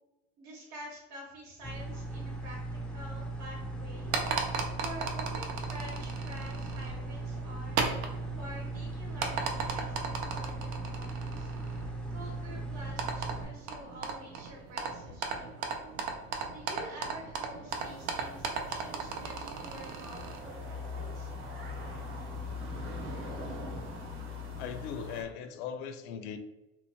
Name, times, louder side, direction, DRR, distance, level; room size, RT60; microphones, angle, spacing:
voice 1, 0.4-2.6 2.9-4.1 4.8-7.8 8.4-11.5 12.1-15.8 16.5-21.3 23.7-23.8, equal, 65° right, -2 dB, 0.8 m, -48 dB
sound 1, 1.6-13.4, right 2 dB, 5° left, 0.4 m, -38 dB
sound 2, 3.9-20.4, right 5 dB, 90° right, 0.6 m, -37 dB
sound 3, 17.7-25.2, left 3 dB, 40° right, 0.9 m, -41 dB
voice 2, 24.6-26.4, left 7 dB, 80° left, 8 dB, 0.5 m, -39 dB
2.9 x 2.1 x 2.7 m, 0.99 s
supercardioid pair, 115°, 32 cm